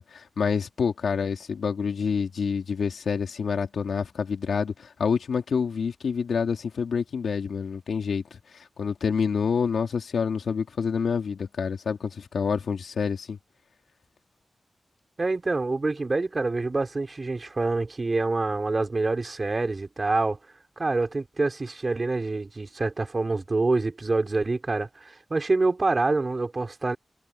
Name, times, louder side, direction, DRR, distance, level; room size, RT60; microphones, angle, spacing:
voice 1, 0.0-13.4, left 6 dB, 80° left, 3.4 m, -27 dB
voice 2, 15.2-20.4 20.8-27.0, right 3 dB, 30° right, 4.2 m, -26 dB
wide cardioid pair, 150°, 0 cm